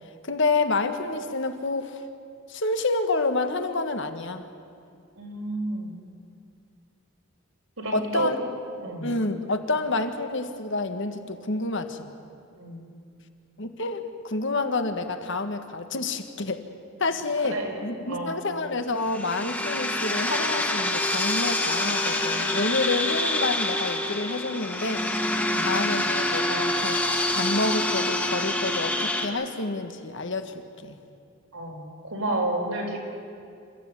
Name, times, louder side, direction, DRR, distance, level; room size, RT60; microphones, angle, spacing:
voice 1, 0.2-2.0 2.5-4.5 7.9-8.3 9.0-12.1 13.6-16.6 17.0-25.1 25.6-30.5 30.8-31.0, left 3 dB, 60° left, 8 dB, 1.5 m, -28 dB
voice 2, 5.2-5.9 7.8-8.3 8.8-9.1 12.6-12.8 17.4-18.4 25.4-25.7 31.5-33.0, right 2 dB, 80° right, -1 dB, 5.3 m, -31 dB
sound 1, 19.0-29.2, left 1 dB, 10° left, 1.8 m, -26 dB
28.0 x 15.0 x 9.6 m, 2.4 s
head